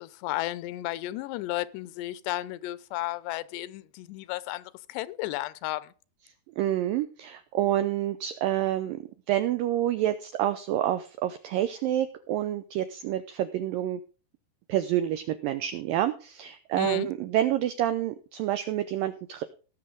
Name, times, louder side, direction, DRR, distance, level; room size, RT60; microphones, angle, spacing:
voice 1, 0.0-5.9 16.8-17.1, left 16 dB, 85° left, 2.8 m, -33 dB
voice 2, 6.6-9.0 9.3-14.0 14.7-19.4, right 12 dB, 85° right, 2.0 m, -28 dB
18.5 x 6.6 x 3.8 m
omnidirectional pair, 4.9 m